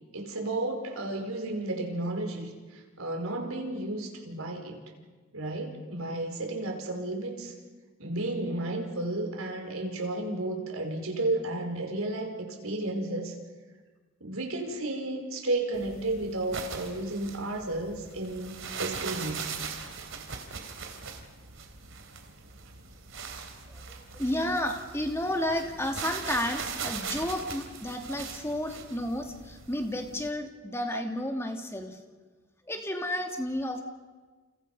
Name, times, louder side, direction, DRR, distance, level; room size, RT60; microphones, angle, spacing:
voice 1, 0.1-4.8 5.3-7.5 8.0-13.3 14.2-19.5, right 2 dB, 90° right, 3 dB, 5.1 m, -33 dB
sound 1, 15.7-30.3, right 5 dB, 65° right, 3.1 m, -40 dB
voice 2, 24.1-32.0 32.7-33.8, left 1 dB, 10° left, 4 dB, 2.3 m, -32 dB
29.5 x 29.0 x 5.5 m, 1.3 s
head